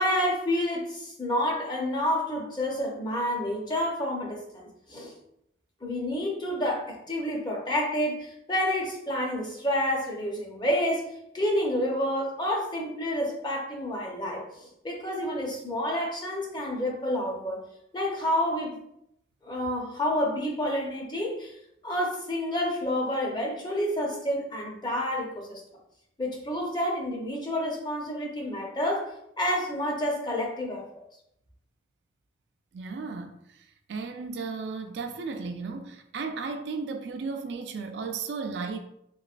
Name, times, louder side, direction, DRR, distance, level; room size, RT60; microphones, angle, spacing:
voice 1, 0.0-5.1 5.8-17.6 17.9-18.7 19.4-21.5 21.8-25.6 26.2-30.8, equal, 25° left, 0.6 m, -29 dB
voice 2, 32.7-38.8, right 4 dB, 75° right, 0.4 m, -35 dB
3.0 x 2.9 x 2.4 m
head